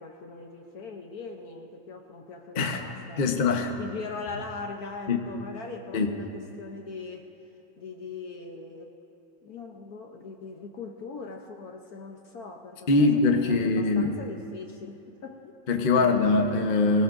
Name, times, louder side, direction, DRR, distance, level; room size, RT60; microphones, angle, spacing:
voice 1, 0.0-3.3 3.8-7.3 7.8-9.0 9.4-15.6 15.9-16.4, left 4 dB, 60° left, 3 dB, 1.2 m, -41 dB
voice 2, 3.2-3.8 5.1-5.2 5.9-6.1 12.9-14.1 15.7-17.0, left 3 dB, 40° left, 4 dB, 0.8 m, -22 dB
22.5 x 19.5 x 2.6 m, 2.8 s
omnidirectional pair, 2.1 m